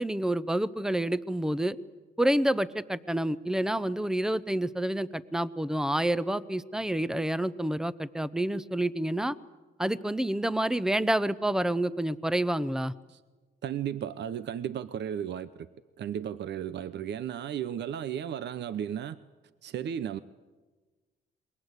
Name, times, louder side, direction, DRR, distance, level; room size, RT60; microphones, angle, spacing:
voice 1, 0.0-1.8 2.2-9.3 9.8-12.9, right 1 dB, 5° right, 0.8 m, -28 dB
voice 2, 13.6-15.7 16.0-19.2 19.6-20.2, right 9 dB, 60° right, 0.8 m, -34 dB
28.0 x 22.0 x 8.2 m
cardioid pair, 90°, 20 cm